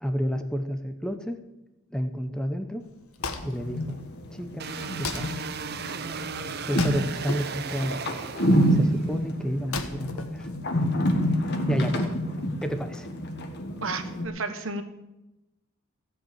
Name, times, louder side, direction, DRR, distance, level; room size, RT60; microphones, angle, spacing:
voice 1, 0.0-1.4 1.9-2.8 3.4-4.0 4.3-4.7 5.0-5.4 6.7-8.3 8.7-10.5 11.7-12.1 12.6-13.1, equal, 5° left, 8 dB, 0.7 m, -30 dB
Wood, 2.8-11.2, left 4 dB, 75° left, 1.2 m, -39 dB
sound 1, 3.3-14.3, equal, 50° left, 1.5 m, -28 dB
sound 2, 4.6-9.1, right 5 dB, 45° right, 0.7 m, -36 dB
voice 2, 13.8-14.8, right 3 dB, 60° right, 8 dB, 1.2 m, -32 dB
16.0 x 5.5 x 8.7 m, 0.99 s
head